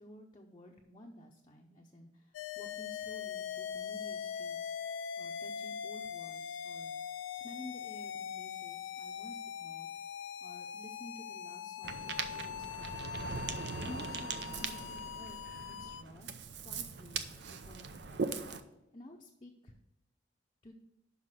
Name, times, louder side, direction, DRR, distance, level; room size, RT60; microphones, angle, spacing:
voice 1, 0.0-4.7 5.2-9.9 10.4-13.2 13.8-16.3 16.6-18.3 18.9-19.7 20.6-20.7, left 1 dB, 25° left, 0 dB, 0.6 m, -53 dB
sound 1, 2.3-16.0, left 8 dB, 85° left, 0.3 m, -42 dB
Ocean, 11.8-18.6, right 5 dB, 65° right, 0.6 m, -40 dB
5.8 x 5.5 x 6.3 m, 0.90 s
head